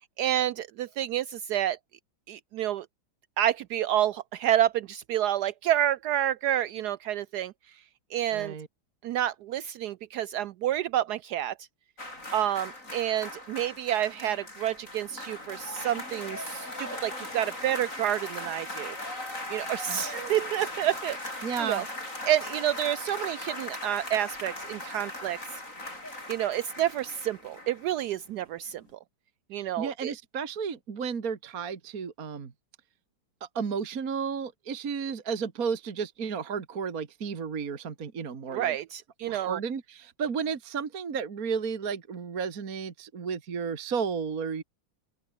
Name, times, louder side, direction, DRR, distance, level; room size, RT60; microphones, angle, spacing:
voice 1, 0.2-1.8 2.3-2.9 3.4-7.5 8.1-8.5 9.0-11.6 12.3-19.0 19.5-21.8 22.3-25.4 26.3-28.8 29.5-30.1 38.5-39.6, right 11 dB, 90° right, 0.8 m, -29 dB
voice 2, 8.3-8.7 19.9-20.0 21.4-21.8 29.6-32.5 33.4-38.8 39.3-44.6, right 6 dB, 45° right, 2.2 m, -33 dB
sound 1, 12.0-28.3 28.5-28.7, left 1 dB, 35° left, 8.6 m, -39 dB
open air
omnidirectional pair, 2.3 m